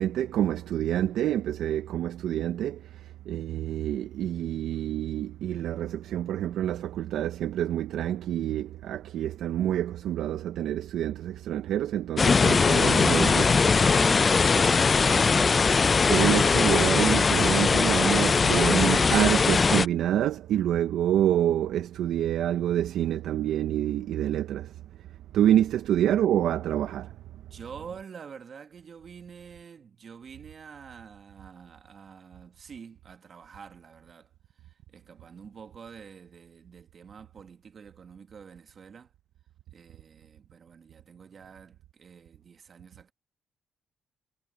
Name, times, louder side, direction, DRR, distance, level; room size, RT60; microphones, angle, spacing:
voice 1, 0.0-13.4 16.1-24.8 25.3-27.2, right 11 dB, 80° right, 0.6 m, -27 dB
sound 1, 12.2-19.9, left 4 dB, 35° left, 0.3 m, -21 dB
voice 2, 12.8-14.9 27.3-34.3 34.6-39.1 39.7-43.1, right 6 dB, 50° right, 1.7 m, -47 dB
cardioid pair, 90°, 0 cm